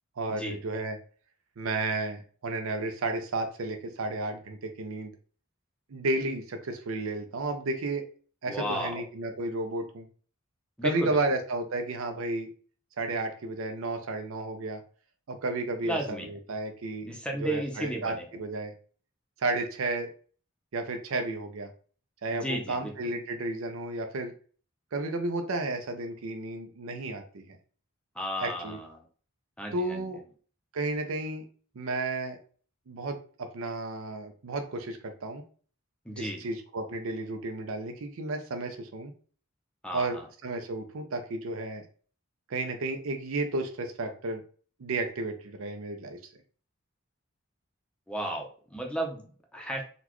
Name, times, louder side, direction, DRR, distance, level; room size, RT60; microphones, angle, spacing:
voice 1, 0.2-1.0 1.6-5.1 5.9-8.1 8.4-10.1 10.8-12.5 13.0-14.8 15.3-17.1 17.4-18.7 19.4-20.1 20.7-21.7 22.2-24.3 24.9-27.4 28.4-28.8 29.7-30.2 30.7-31.4 31.8-32.4 32.9-35.4 36.2-39.1 39.9-41.8 42.5-44.4 44.8-46.2, right 2 dB, 70° right, 6 dB, 0.5 m, -32 dB
voice 2, 8.5-8.9 10.8-11.2 15.8-16.3 17.0-18.3 22.3-22.9 28.2-29.1 29.6-30.0 36.1-36.4 39.8-40.3 48.1-49.8, right 1 dB, 5° left, 1 dB, 0.6 m, -34 dB
4.0 x 2.2 x 2.9 m, 0.42 s
head